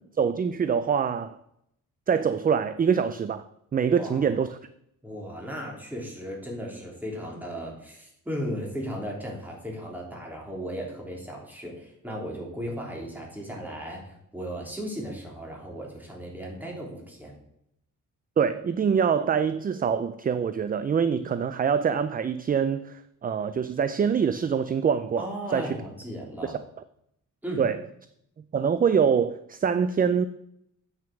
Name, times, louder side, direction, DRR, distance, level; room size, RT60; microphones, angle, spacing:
voice 1, 0.2-1.4 2.1-3.4 3.7-4.6 18.4-25.8 26.4-26.6 27.6-27.8 28.5-30.2, right 7 dB, 30° right, 0.4 m, -25 dB
voice 2, 3.8-4.3 5.0-17.3 25.2-26.6 27.4-27.6, equal, 5° right, 3.2 m, -36 dB
8.9 x 6.2 x 6.0 m
cardioid pair, 125°, 33 cm